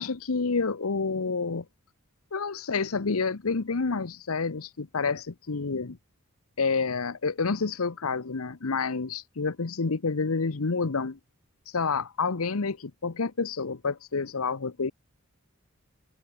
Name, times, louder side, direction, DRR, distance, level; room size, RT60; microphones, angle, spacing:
voice 1, 0.0-1.6 2.3-6.0 6.6-11.2 11.7-14.9, left 4 dB, 90° left, 0.9 m, -29 dB
head